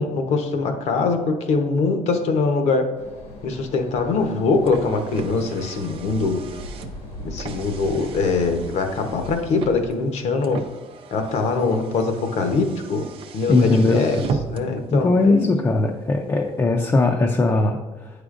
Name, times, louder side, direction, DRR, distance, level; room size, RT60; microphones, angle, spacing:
voice 1, 0.0-2.9 3.4-6.4 7.2-10.6 11.1-13.1 13.3-14.2 14.5-15.5, left 4 dB, 65° left, 6 dB, 0.8 m, -22 dB
sound 1, 2.9-9.9, left 1 dB, 85° left, 1.5 m, -39 dB
Car, 4.2-14.8, right 5 dB, 50° right, 0.5 m, -36 dB
voice 2, 13.5-14.3 14.9-18.1, left 2 dB, 20° left, 1 dB, 0.4 m, -19 dB
8.8 x 4.9 x 2.5 m, 1.2 s
cardioid pair, 120°, 12 cm